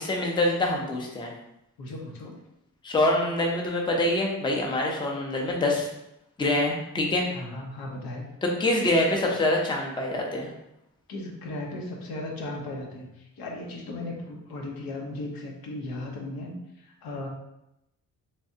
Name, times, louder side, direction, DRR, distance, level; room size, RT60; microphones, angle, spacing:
voice 1, 0.0-1.3 2.8-5.9 6.4-7.3 8.4-10.5, left 1 dB, 15° left, -1 dB, 0.5 m, -25 dB
voice 2, 1.8-2.4 7.3-8.3 11.1-17.3, left 2 dB, 85° left, 0 dB, 0.9 m, -36 dB
3.4 x 3.2 x 2.7 m, 0.85 s
wide cardioid pair, 140°, 35 cm